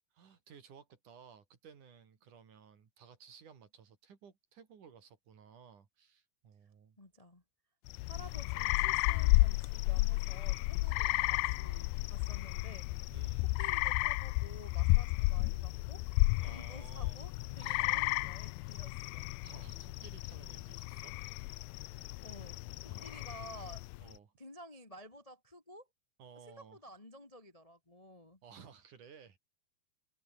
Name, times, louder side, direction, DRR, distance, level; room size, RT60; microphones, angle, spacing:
voice 1, 0.1-7.0 9.1-9.3 10.9-12.0 13.1-13.6 16.4-17.2 17.5-18.3 19.4-21.5 22.8-23.4 24.0-24.3 26.2-26.8 28.4-29.4, right 7 dB, 55° right, 4.2 m, -57 dB
voice 2, 7.0-7.4 8.0-13.1 13.4-16.0 16.4-19.3 22.2-23.8 24.4-25.9 26.5-28.4, equal, 40° left, 0.5 m, -53 dB
sound 1, 7.9-24.1, left 23 dB, 80° left, 2.3 m, -33 dB
open air
omnidirectional pair, 4.6 m